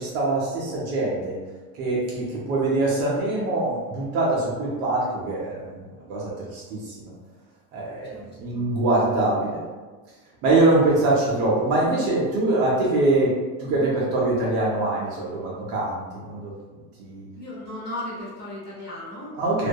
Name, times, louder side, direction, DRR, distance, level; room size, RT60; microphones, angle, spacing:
voice 1, 0.0-1.4 1.7-5.8 6.1-7.1 7.7-9.6 10.4-16.6 17.0-17.2 19.3-19.7, right 2 dB, 40° right, -4 dB, 0.4 m, -23 dB
voice 2, 17.4-19.3, left 1 dB, 25° left, -7 dB, 0.6 m, -36 dB
2.2 x 2.2 x 2.7 m, 1.4 s
cardioid pair, 165°, 40 cm